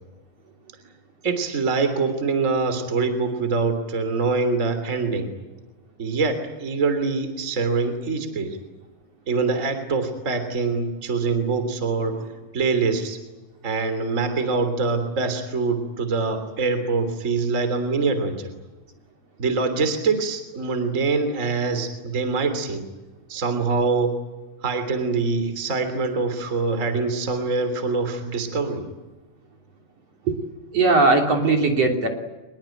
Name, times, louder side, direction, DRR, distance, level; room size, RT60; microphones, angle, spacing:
voice 1, 1.2-5.3 6.0-8.6 9.3-13.2 13.6-18.5 19.4-22.8 23.3-24.1 24.6-28.8, right 4 dB, 25° right, 8 dB, 3.2 m, -24 dB
voice 2, 30.7-32.1, right 3 dB, 50° right, 2 dB, 4.1 m, -18 dB
25.0 x 22.5 x 9.1 m, 1.1 s
omnidirectional pair, 3.9 m